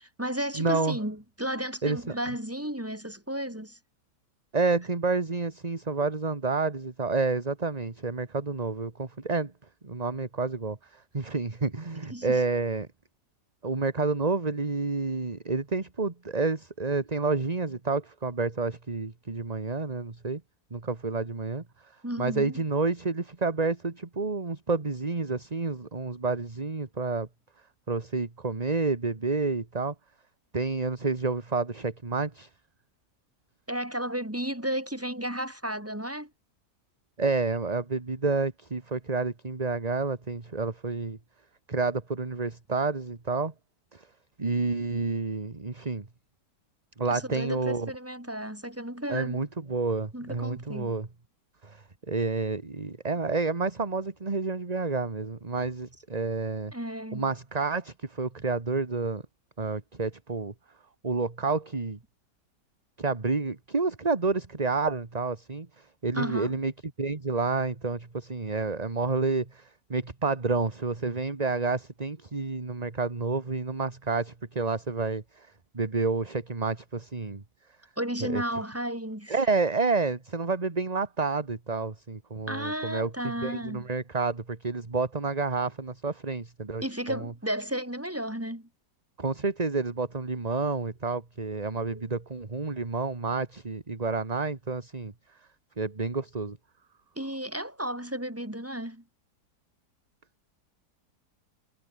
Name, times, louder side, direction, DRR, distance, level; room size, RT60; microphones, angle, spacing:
voice 1, 0.0-3.8 12.1-12.4 22.0-22.6 33.7-36.3 47.1-49.4 50.1-51.0 56.7-57.3 66.1-66.5 78.0-79.3 82.5-83.9 86.8-88.7 91.9-92.0 97.2-99.0, right 1 dB, 10° right, 4.6 m, -33 dB
voice 2, 0.6-1.0 1.8-2.1 4.5-9.5 9.8-12.9 13.6-20.4 20.7-21.9 22.2-27.3 27.9-29.9 30.5-32.5 37.2-41.2 41.7-43.5 43.9-44.1 44.4-46.1 47.0-47.9 49.1-51.1 51.6-56.7 57.1-59.2 59.6-60.5 61.0-62.0 63.0-66.7 67.0-77.4 78.2-78.4 79.3-86.8 87.1-87.3 89.2-95.1 95.8-96.6, right 4 dB, 25° right, 1.7 m, -29 dB
omnidirectional pair, 1.8 m